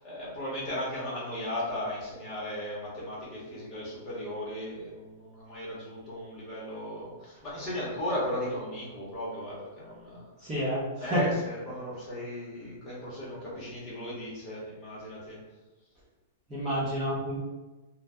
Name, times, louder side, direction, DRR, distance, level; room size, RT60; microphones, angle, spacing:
voice 1, 0.0-10.3 11.0-15.4, left 1 dB, 20° left, -7 dB, 0.9 m, -36 dB
voice 2, 10.4-11.2 16.5-17.4, equal, 15° right, -10 dB, 0.5 m, -30 dB
2.6 x 2.1 x 3.4 m, 1.1 s
supercardioid pair, 180°, 0 cm